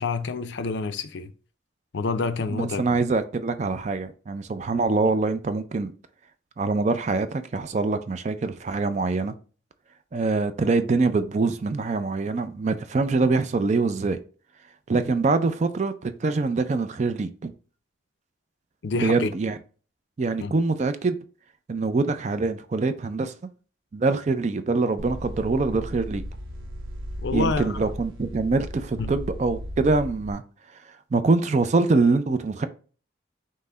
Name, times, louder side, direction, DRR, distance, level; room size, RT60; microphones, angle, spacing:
voice 1, 0.0-1.3 1.9-2.8 18.8-19.3 20.4-20.5 27.2-27.8 29.0-29.1, left 4 dB, 65° left, 0.5 m, -28 dB
voice 2, 2.5-5.9 6.6-9.3 10.1-14.2 14.9-17.5 18.9-19.6 20.2-21.2 21.7-23.3 23.9-26.2 27.3-30.4 31.1-32.7, right 3 dB, 35° right, 0.3 m, -24 dB
sound 1, 25.0-30.3, equal, 90° right, 0.8 m, -35 dB
5.6 x 2.1 x 3.7 m
head